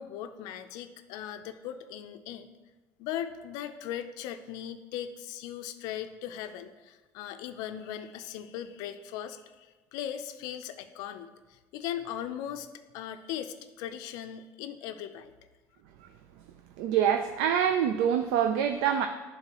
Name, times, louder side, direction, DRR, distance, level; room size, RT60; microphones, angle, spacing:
voice 1, 0.0-2.5 3.0-9.7 9.9-12.7 12.9-15.3, left 10 dB, 65° left, 10 dB, 0.4 m, -38 dB
voice 2, 16.8-19.1, right 8 dB, 80° right, 7 dB, 0.4 m, -25 dB
10.5 x 3.8 x 2.9 m, 1.2 s
cardioid pair, 165°, 7 cm